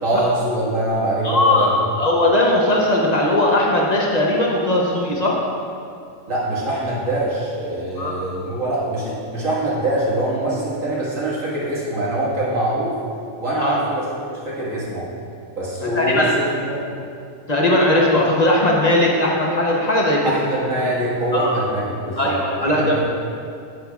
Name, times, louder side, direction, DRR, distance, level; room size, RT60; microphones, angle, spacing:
voice 1, 0.0-1.7 6.3-13.0 13.4-15.1 15.6-16.9 20.2-23.0, right 1 dB, 60° right, -7 dB, 2.0 m, -23 dB
voice 2, 1.2-5.4 8.0-8.1 13.6-13.8 15.9-16.3 17.5-20.2 21.3-21.6 22.2-23.0, left 1 dB, 40° left, -2 dB, 0.6 m, -18 dB
8.4 x 7.6 x 2.3 m, 2.4 s
omnidirectional pair, 1.5 m